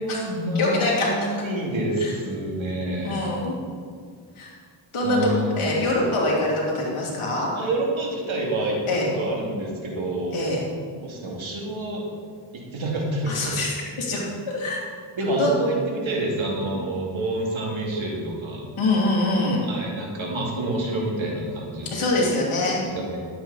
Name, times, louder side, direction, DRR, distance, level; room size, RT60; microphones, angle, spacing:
voice 1, 0.0-3.2 5.0-5.9 7.6-10.4 11.0-12.1 12.5-13.6 15.2-18.6 19.6-21.9 22.2-22.3 22.9-23.2, right 1 dB, 65° right, -2 dB, 2.7 m, -28 dB
voice 2, 0.5-1.3 2.0-2.1 3.0-3.5 4.4-4.5 4.9-5.3 5.6-7.5 8.9-9.1 10.3-10.6 13.3-14.8 15.4-15.5 16.7-16.8 18.8-19.6 21.9-22.8, left 2 dB, 75° left, -4 dB, 3.2 m, -24 dB
11.5 x 8.8 x 4.2 m, 2.1 s
cardioid pair, 55°, 50 cm